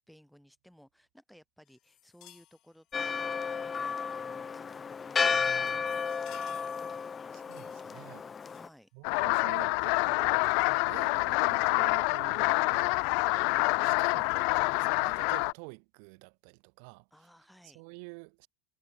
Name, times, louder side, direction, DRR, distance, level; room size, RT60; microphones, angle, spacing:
voice 1, 0.0-5.4 7.8-8.0 8.5-9.2 17.1-17.8, equal, ahead, 4.3 m, -59 dB
sound 1, 1.7-4.3 4.9-5.1 5.4-8.9 9.5-9.7 10.5-10.7, left 16 dB, 40° left, 3.1 m, -59 dB
Church bell, 2.9-8.7, left 6 dB, 20° left, 0.6 m, -33 dB
voice 2, 5.3-6.0 7.3-8.2 8.9-17.1 17.6-18.5, right 40 dB or more, 60° right, 1.6 m, -49 dB
sound 2, 9.0-15.5, left 38 dB, 60° left, 0.6 m, -27 dB
supercardioid pair, 145°, 0 cm